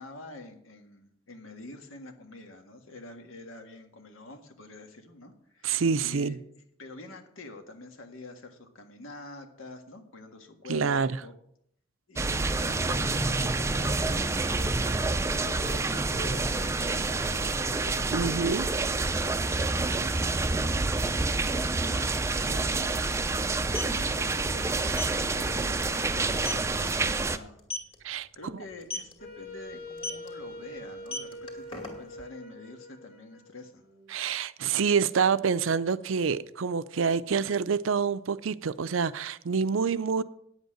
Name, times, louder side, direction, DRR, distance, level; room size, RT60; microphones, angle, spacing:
voice 1, 0.0-6.4 6.8-11.3 12.1-18.4 19.2-20.4 21.0-23.4 23.8-27.6 28.3-33.8, left 2 dB, 85° left, 1.6 m, -46 dB
voice 2, 5.6-6.4 10.7-11.1 18.1-18.7 28.0-28.3 34.1-40.2, right 6 dB, 80° right, 0.5 m, -27 dB
sound 1, 12.2-27.4, right 3 dB, 15° right, 0.4 m, -28 dB
sound 2, 23.7-24.0 24.9-25.2 25.6-25.8 26.1-26.2 26.4-26.7 27.6-27.9 28.8-29.1 30.0-30.3 30.9-32.2, left 2 dB, 25° left, 2.2 m, -35 dB
Wind instrument woodwind instrument, 29.2-34.1, left 1 dB, 50° left, 1.9 m, -44 dB
9.6 x 8.1 x 6.4 m
head